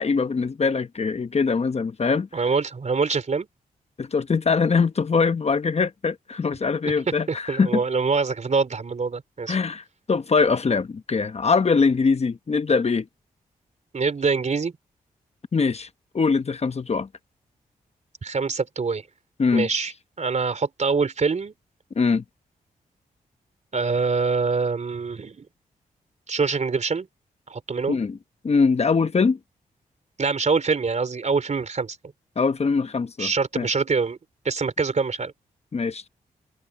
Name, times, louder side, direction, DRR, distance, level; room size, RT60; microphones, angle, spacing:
voice 1, 0.0-2.5 4.0-7.8 9.5-13.1 15.5-15.9 16.1-17.1 19.4-19.7 21.9-22.2 27.9-28.2 28.4-29.4 32.4-33.7 35.7-36.1, left 5 dB, 45° left, 1.0 m, -22 dB
voice 2, 2.3-3.5 7.3-9.6 13.9-14.7 18.2-19.0 19.5-19.9 20.2-21.5 23.7-25.5 26.3-27.1 27.5-28.0 30.2-32.0 33.2-34.2 34.4-35.3, right 4 dB, 50° right, 3.4 m, -24 dB
open air
cardioid pair, 60°, 15 cm